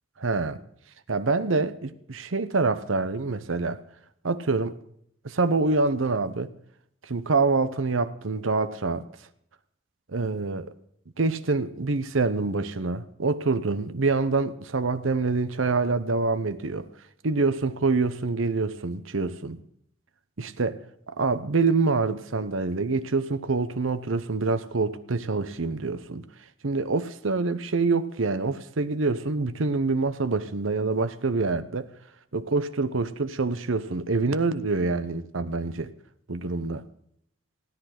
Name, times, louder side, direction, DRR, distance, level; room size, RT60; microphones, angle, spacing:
voice 1, 0.2-0.6 1.1-3.8 4.2-4.8 5.2-6.5 7.1-9.0 10.1-10.7 11.2-16.9 17.2-19.6 20.4-20.8 21.2-26.2 26.6-31.9 32.3-35.9 36.3-36.8, right 3 dB, 90° right, 0.9 m, -26 dB
16.5 x 10.5 x 5.9 m
head